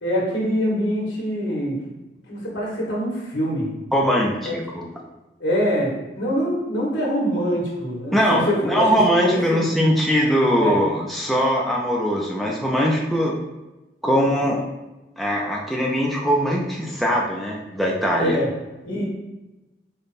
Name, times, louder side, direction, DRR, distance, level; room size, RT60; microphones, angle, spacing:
voice 1, 0.0-1.8 2.3-3.7 4.4-4.7 5.4-9.7 10.6-10.8 14.0-14.2 18.2-18.5 18.8-19.0, equal, 80° left, -3 dB, 1.5 m, -24 dB
voice 2, 3.9-4.8 8.1-13.4 14.0-14.6 15.2-18.4, equal, ahead, -3 dB, 0.4 m, -21 dB
5.1 x 2.2 x 4.1 m, 1.0 s
head